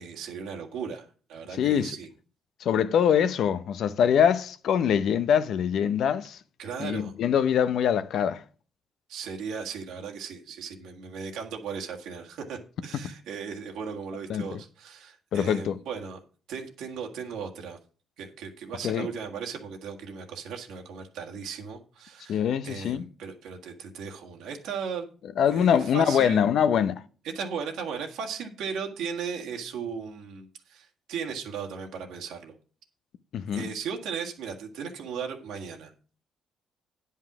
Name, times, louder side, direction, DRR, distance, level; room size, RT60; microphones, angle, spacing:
voice 1, 0.0-2.1 6.6-7.1 9.1-16.2 16.5-17.8 18.2-25.1 25.5-26.4 27.2-32.5 33.5-35.9, right 6 dB, 85° right, 1.8 m, -37 dB
voice 2, 1.6-1.9 2.6-6.4 6.8-8.4 14.3-14.4 15.3-15.7 18.8-19.1 22.3-23.0 25.4-27.0 33.3-33.6, left 8 dB, 70° left, 0.7 m, -23 dB
9.8 x 5.6 x 6.0 m
cardioid pair, 90°, 0 cm